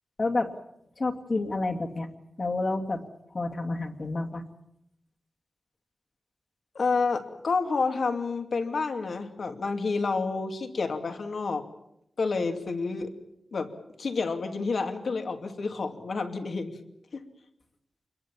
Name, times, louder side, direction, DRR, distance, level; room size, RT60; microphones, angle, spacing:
voice 1, 0.2-0.5 1.0-2.1 2.4-3.0 3.3-4.4, left 2 dB, 45° left, 4 dB, 2.5 m, -29 dB
voice 2, 6.7-11.6 12.2-13.1 13.5-13.7 14.0-16.8 17.1-17.2, left 4 dB, 70° left, 5 dB, 2.7 m, -29 dB
27.0 x 21.5 x 7.3 m, 0.80 s
wide cardioid pair, 115°, 0 cm